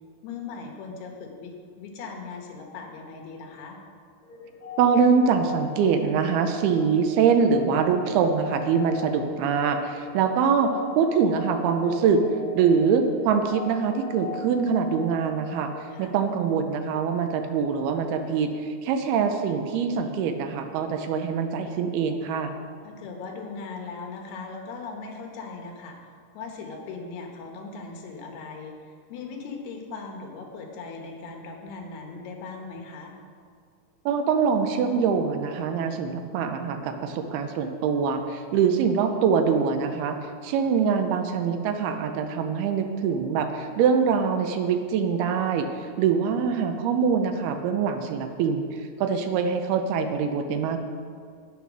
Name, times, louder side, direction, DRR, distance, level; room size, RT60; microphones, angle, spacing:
voice 1, 0.2-3.8 15.9-16.2 22.8-26.0 26.3-28.8 29.1-33.1, left 4 dB, 75° left, 2 dB, 3.2 m, -39 dB
sound 1, 4.2-17.0, left 5 dB, 40° left, 2.8 m, -41 dB
voice 2, 4.8-12.2 12.6-15.7 16.0-22.5 34.1-40.2 40.4-45.7 46.0-50.8, right 6 dB, 80° right, 6 dB, 2.6 m, -24 dB
10.5 x 9.1 x 6.1 m, 2.1 s
omnidirectional pair, 4.7 m